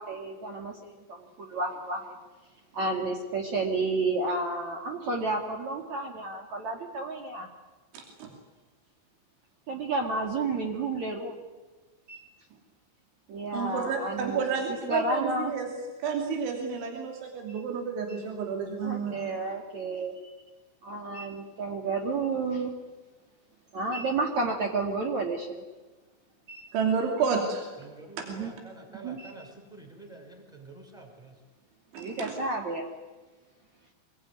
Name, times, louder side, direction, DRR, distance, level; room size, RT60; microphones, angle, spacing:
voice 1, 0.0-2.1 2.7-7.5 9.7-11.4 12.1-12.2 13.3-14.4 14.9-15.5 18.8-20.2 20.8-22.7 23.7-25.6 26.5-26.7 28.3-28.5 28.9-29.3 31.9-32.9, right 3 dB, 50° right, 2 dB, 2.8 m, -31 dB
voice 2, 7.9-8.3 13.5-15.7 16.0-19.2 26.7-27.7 31.9-32.3, right 5 dB, 80° right, 3 dB, 5.2 m, -30 dB
voice 3, 27.8-31.3, right 2 dB, ahead, 3 dB, 4.7 m, -48 dB
26.0 x 21.5 x 9.7 m, 1.2 s
omnidirectional pair, 5.3 m